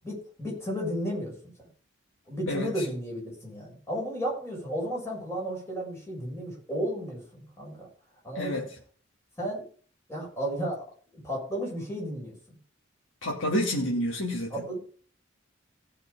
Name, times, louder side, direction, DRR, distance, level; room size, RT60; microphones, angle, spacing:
voice 1, 0.0-1.5 2.3-7.9 8.2-8.7 9.4-9.7 10.1-10.9 11.1-12.6 14.5-14.8, equal, 15° left, -3 dB, 7.1 m, -33 dB
voice 2, 2.5-2.8 8.3-8.7 13.2-14.6, equal, 75° left, -3 dB, 2.9 m, -29 dB
17.0 x 6.6 x 5.3 m, 0.43 s
head